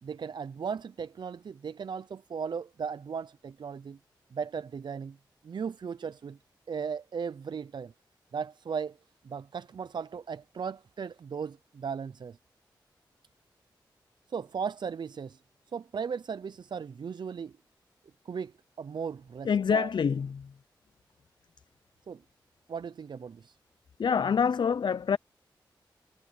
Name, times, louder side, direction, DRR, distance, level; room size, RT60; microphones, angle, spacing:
voice 1, 0.0-4.0 4.3-5.2 5.4-6.4 6.7-7.9 8.3-9.0 9.2-12.4 14.3-15.4 15.7-17.5 18.3-19.9 22.1-22.2 22.7-23.6, right 6 dB, 65° right, 0.5 m, -37 dB
voice 2, 19.4-20.5 24.0-25.2, left 6 dB, 65° left, 0.6 m, -26 dB
cardioid pair, 45°, 8 cm